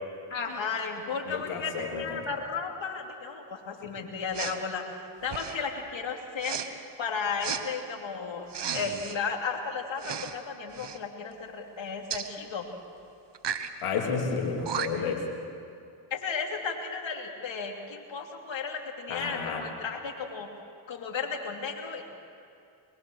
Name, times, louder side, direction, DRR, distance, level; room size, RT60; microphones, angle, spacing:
voice 1, 0.3-4.8 5.2-6.6 7.0-12.6 16.1-20.5 20.9-22.0, left 5 dB, 60° left, 2 dB, 3.3 m, -34 dB
voice 2, 1.3-2.2 3.8-3.9 13.8-15.3 19.1-19.6, left 5 dB, 85° left, 0 dB, 3.3 m, -31 dB
Respiratory sounds, 4.3-4.6 5.2-5.7 6.4-6.7 7.4-7.6 8.5-9.2 10.0-10.4 10.7-11.0 12.1-12.3 13.3-13.7 14.4-14.5 14.6-15.1, right 8 dB, 55° right, 1.5 m, -34 dB
23.0 x 22.0 x 6.6 m, 2.5 s
supercardioid pair, 50°, 50 cm